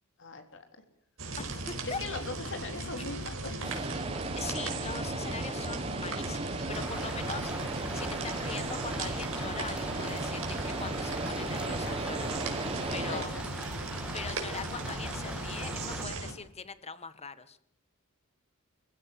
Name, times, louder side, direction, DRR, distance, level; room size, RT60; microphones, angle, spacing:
voice 1, 0.2-0.7 1.8-3.9 13.0-13.4, left 3 dB, 60° left, 6 dB, 3.7 m, -40 dB
sound 1, 1.2-16.3, right 2 dB, 65° right, 4.8 m, -38 dB
voice 2, 1.4-2.0 4.3-7.7 7.9-12.3 12.9-13.3 14.1-17.6, left 5 dB, 30° left, 14 dB, 1.5 m, -41 dB
sound 2, 3.6-13.2, right 2 dB, 25° right, 1.6 m, -36 dB
sound 3, 6.7-16.0, right 1 dB, 5° right, 2.7 m, -41 dB
26.0 x 15.5 x 7.6 m, 0.68 s
head